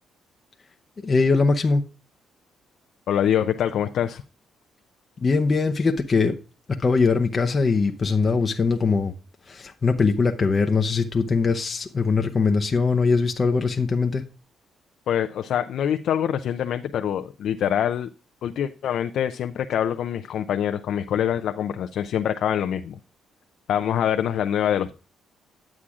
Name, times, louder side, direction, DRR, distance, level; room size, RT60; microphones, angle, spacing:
voice 1, 1.0-1.8 5.2-6.3 6.8-9.1 9.5-14.2, left 4 dB, 35° left, 0.6 m, -21 dB
voice 2, 3.1-4.2 15.1-18.1 18.4-23.0 23.7-25.0, left 9 dB, 70° left, 0.4 m, -25 dB
9.7 x 7.4 x 2.4 m
cardioid pair, 90°, 0 cm